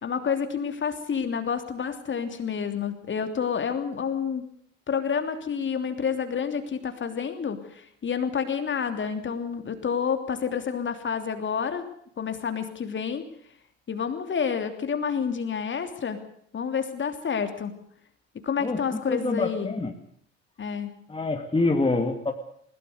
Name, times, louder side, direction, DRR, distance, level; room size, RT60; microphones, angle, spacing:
voice 1, 0.0-4.5 4.9-11.8 12.2-13.2 13.9-16.2 16.5-17.7 18.4-19.7 20.6-20.9, left 6 dB, 30° left, 8 dB, 3.0 m, -29 dB
voice 2, 19.1-19.9 21.1-22.3, left 3 dB, 15° left, 4 dB, 2.7 m, -25 dB
21.5 x 20.5 x 6.8 m, 0.65 s
figure-of-eight pair, 65°, 36 cm